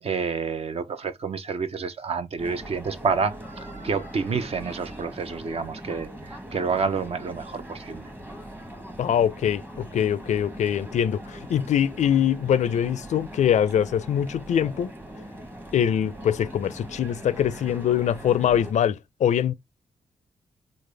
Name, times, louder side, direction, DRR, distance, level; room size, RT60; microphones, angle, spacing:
voice 1, 0.0-8.1, right 5 dB, 50° right, 0.6 m, -29 dB
sound 1, 2.4-18.7, right 1 dB, 15° right, 1.0 m, -41 dB
voice 2, 9.0-14.9 15.7-19.5, left 9 dB, 70° left, 0.4 m, -23 dB
3.3 x 2.1 x 3.3 m
cardioid pair, 60°, 13 cm